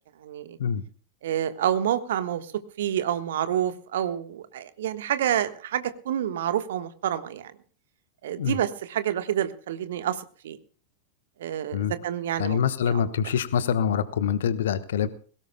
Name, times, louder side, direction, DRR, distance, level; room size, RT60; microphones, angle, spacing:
voice 1, 0.2-0.6 1.2-2.5 2.8-7.5 8.2-10.6 11.4-12.6 12.9-13.1, right 10 dB, 60° right, 11 dB, 1.3 m, -28 dB
voice 2, 12.4-15.1, left 8 dB, 60° left, 14 dB, 1.1 m, -25 dB
22.0 x 17.5 x 2.2 m, 0.42 s
figure-of-eight pair, 90°, 0 cm